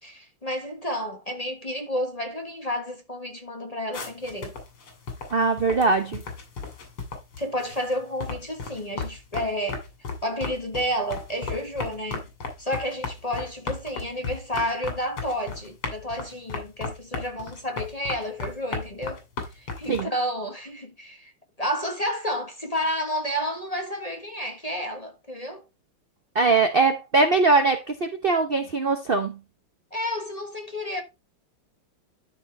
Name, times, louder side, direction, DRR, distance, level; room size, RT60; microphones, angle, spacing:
voice 1, 0.0-4.6 7.4-9.8 10.2-12.3 12.6-19.2 19.5-21.3 21.6-25.6 29.9-31.0, equal, 20° left, 1.3 m, -31 dB
sound 1, 3.9-20.0, left 4 dB, 85° left, 3.6 m, -35 dB
voice 2, 5.3-6.2 19.9-20.1 26.3-29.4, right 3 dB, 45° right, 0.7 m, -21 dB
12.5 x 4.7 x 3.3 m
omnidirectional pair, 2.3 m